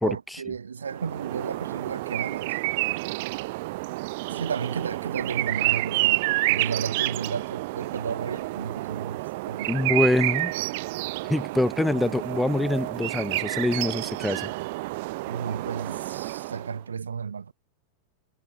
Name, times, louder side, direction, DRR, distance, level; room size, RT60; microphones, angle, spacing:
voice 1, 0.0-2.6 4.3-6.2 6.5-9.7 15.3-17.5, right 6 dB, 70° right, 0.6 m, -33 dB
sound 1, 0.9-16.8, right 21 dB, 50° right, 1.4 m, -29 dB
voice 2, 9.7-10.5 11.3-14.5, left 1 dB, 5° left, 0.6 m, -25 dB
figure-of-eight pair, 90°, 0 cm